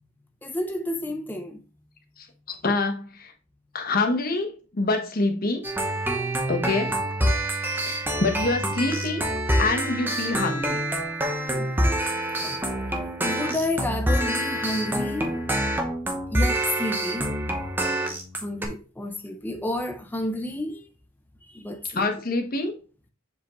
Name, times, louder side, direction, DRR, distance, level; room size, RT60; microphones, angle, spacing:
voice 1, 0.4-1.6 11.4-11.7 12.4-12.9 13.2-15.3 16.3-17.3 18.4-20.9 21.5-22.1, left 1 dB, 10° left, 0.5 m, -31 dB
voice 2, 2.2-3.3 3.7-5.6 6.5-7.0 7.6-9.3 9.6-10.8 21.9-22.7, left 3 dB, 45° left, 1.1 m, -26 dB
sound 1, 5.6-18.7, right 1 dB, 10° right, 0.9 m, -26 dB
7.2 x 4.9 x 3.0 m
head